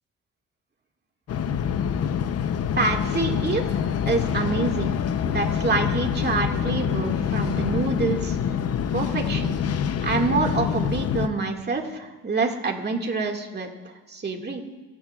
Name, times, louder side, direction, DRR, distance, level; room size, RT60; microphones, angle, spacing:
sound 1, 1.3-11.3, left 8 dB, 55° left, 0.8 m, -26 dB
voice 1, 2.8-8.4 8.9-9.6 10.0-13.7 14.1-14.6, right 3 dB, 35° right, 2 dB, 2.1 m, -26 dB
29.5 x 11.0 x 2.4 m, 1.2 s
cardioid pair, 90°, 30 cm